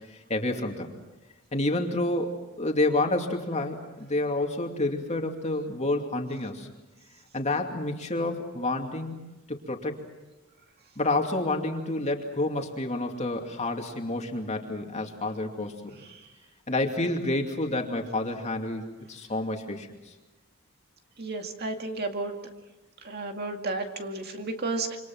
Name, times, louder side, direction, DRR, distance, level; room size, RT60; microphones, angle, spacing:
voice 1, 0.1-0.9 1.5-2.3 2.6-6.7 7.3-9.2 9.5-10.0 11.0-16.0 16.7-19.9, left 2 dB, 30° left, 3 dB, 2.6 m, -29 dB
voice 2, 21.2-22.4 23.0-25.0, right 3 dB, 50° right, 4 dB, 2.2 m, -32 dB
27.5 x 25.5 x 6.1 m, 1.1 s
head